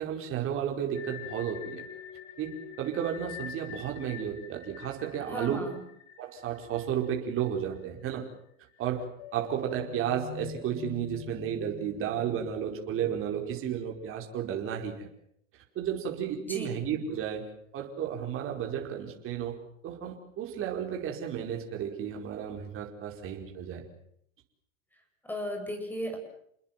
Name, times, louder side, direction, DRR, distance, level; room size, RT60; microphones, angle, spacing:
voice 1, 0.0-1.8 2.4-5.6 6.2-8.3 8.8-9.1 9.3-15.1 15.5-19.6 19.8-23.8, right 9 dB, 35° right, 1 dB, 5.0 m, -33 dB
sound 1, 0.9-7.8 8.1-8.2 8.7-14.1, left 10 dB, 45° left, 2.7 m, -46 dB
voice 2, 5.2-5.8 16.4-16.7 25.2-26.2, equal, 5° left, 5 dB, 7.9 m, -35 dB
29.5 x 21.0 x 7.6 m, 0.70 s
supercardioid pair, 130°, 37 cm